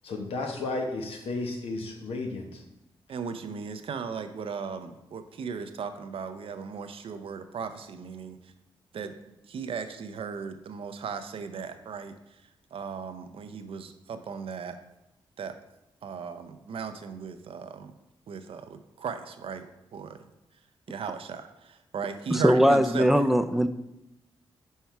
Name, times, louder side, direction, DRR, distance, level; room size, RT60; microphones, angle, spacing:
voice 1, 0.0-2.6, left 3 dB, 85° left, 3 dB, 1.0 m, -33 dB
voice 2, 3.1-8.4 8.9-9.1 9.5-12.1 12.7-14.8 15.4-15.5 16.0-17.9 18.3-19.7 19.9-20.2 20.9-23.2, right 6 dB, 70° right, 9 dB, 0.6 m, -36 dB
voice 3, 22.3-23.7, equal, 5° right, 9 dB, 0.4 m, -20 dB
5.6 x 4.6 x 4.6 m, 0.90 s
cardioid pair, 65°, 10 cm